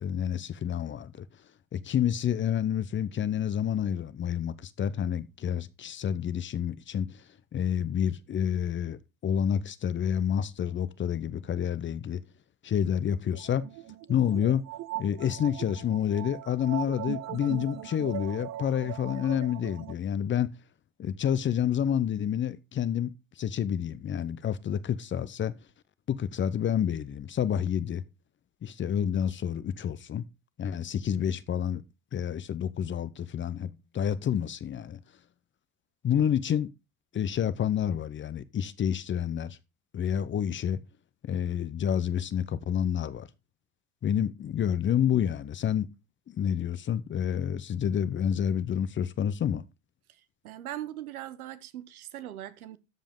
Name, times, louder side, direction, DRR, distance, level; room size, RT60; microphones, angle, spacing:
voice 1, 0.0-1.3 1.7-7.2 7.5-12.2 12.6-13.7 14.1-14.6 14.9-20.5 21.0-23.1 23.4-25.5 26.1-28.0 28.6-30.2 30.6-31.8 32.1-35.0 36.0-36.7 37.1-39.6 39.9-40.8 41.2-43.3 44.0-45.9 46.3-49.6, left 9 dB, 30° left, 0.7 m, -29 dB
sound 1, 13.3-19.9, right 14 dB, 40° right, 0.6 m, -40 dB
voice 2, 50.1-52.8, right 13 dB, 90° right, 1.1 m, -40 dB
13.0 x 5.1 x 3.7 m
hypercardioid pair, 90°, 42 cm